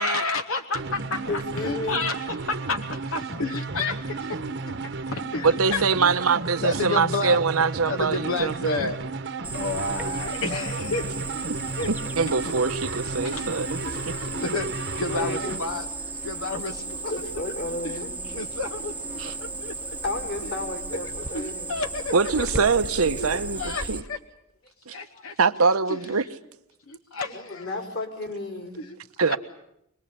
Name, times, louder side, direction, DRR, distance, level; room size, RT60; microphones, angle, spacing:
voice 1, 0.0-4.4 5.1-5.8 6.6-7.4 7.8-9.0 9.5-11.4 11.8-11.9 13.2-13.5 13.9-15.9 16.2-17.3 17.8-18.9 19.4-19.7 21.0-22.7 23.2-24.2 24.9-25.4 25.9-26.0 26.9-27.7 28.7-29.4, left 3 dB, 70° left, 1.1 m, -31 dB
sound 1, 0.7-15.6, right 3 dB, 55° right, 1.2 m, -33 dB
voice 2, 1.3-2.1 13.5-13.6 15.1-15.8 16.8-18.2 20.0-21.8 25.1-25.3 27.1-28.8, left 2 dB, 50° left, 4.4 m, -33 dB
voice 3, 5.4-8.9 11.9-14.1 19.2-19.3 22.1-24.0 24.9-25.0 25.4-26.3 29.2-29.4, right 4 dB, 80° right, 1.0 m, -24 dB
Cricket, 9.4-24.0, right 3 dB, 10° right, 1.0 m, -35 dB
26.5 x 20.5 x 8.7 m
head